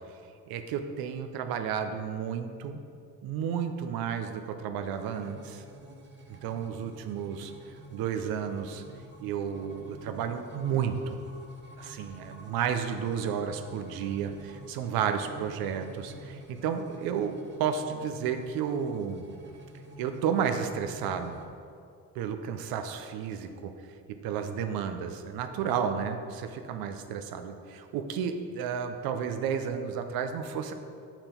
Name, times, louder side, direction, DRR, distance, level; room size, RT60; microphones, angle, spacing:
voice 1, 0.5-2.8 3.2-5.6 6.3-7.5 7.9-8.8 9.2-11.2 11.8-17.3 17.6-19.3 20.0-21.4 22.1-23.7 24.2-30.7, right 7 dB, 90° right, 7 dB, 0.7 m, -32 dB
sound 1, 4.8-21.5, right 1 dB, 30° right, 1.2 m, -49 dB
7.0 x 5.9 x 4.4 m, 2.4 s
cardioid pair, 100°, 35 cm